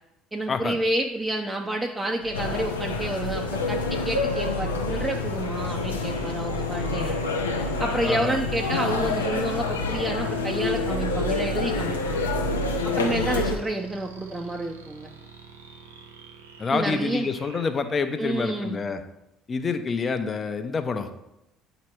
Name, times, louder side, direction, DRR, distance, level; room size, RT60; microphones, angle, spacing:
voice 1, 0.3-7.2 7.8-12.2 12.8-15.1 16.7-17.3 18.2-18.8, right 1 dB, 15° right, 2 dB, 0.6 m, -29 dB
sound 1, 2.2-18.7, right 4 dB, 90° right, 0.6 m, -46 dB
sound 2, 2.3-13.6, left 3 dB, 90° left, 0.6 m, -27 dB
voice 2, 8.0-8.4 16.6-19.0 19.5-21.1, left 4 dB, 35° left, 9 dB, 0.7 m, -27 dB
8.3 x 3.0 x 4.5 m, 0.88 s
hypercardioid pair, 60°, 0 cm